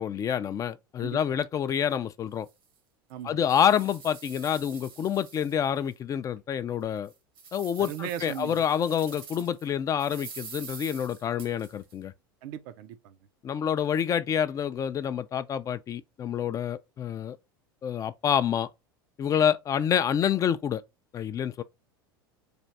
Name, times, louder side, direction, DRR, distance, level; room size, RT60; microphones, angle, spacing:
voice 1, 0.0-2.5 3.2-7.1 7.5-12.1 13.4-17.4 17.8-18.7 19.2-20.8 21.1-21.6, left 8 dB, 30° left, 0.3 m, -27 dB
sound 1, 1.9-2.0 2.5-2.6 3.1-5.9 6.4-6.5 7.0-9.7 10.0-11.9, right 6 dB, 75° right, 1.3 m, -46 dB
voice 2, 3.1-3.4 7.8-8.6 12.4-13.2, right 11 dB, 60° right, 0.5 m, -37 dB
3.4 x 2.5 x 4.0 m
hypercardioid pair, 90°, 12 cm